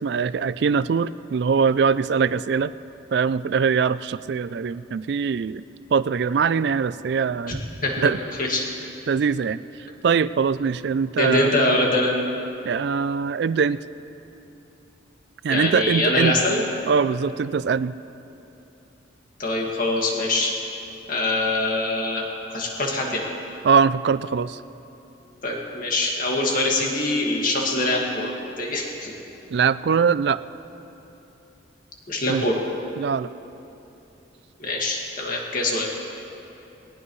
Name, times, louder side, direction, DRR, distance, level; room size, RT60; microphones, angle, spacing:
voice 1, 0.0-2.7 3.1-5.6 5.9-7.6 8.0-8.2 9.1-11.5 12.6-13.8 15.4-16.4 16.9-17.9 23.6-24.6 29.5-30.4 32.3-32.4 33.0-33.3, right 6 dB, 60° right, 16 dB, 0.3 m, -22 dB
voice 2, 11.2-12.1 15.5-16.6 19.4-20.5 21.1-22.2 22.5-23.2 25.4-28.3 28.6-29.1 32.1-32.6 34.6-35.9, left 2 dB, 45° left, -1 dB, 2.1 m, -23 dB
20.5 x 18.0 x 3.2 m, 2.9 s
head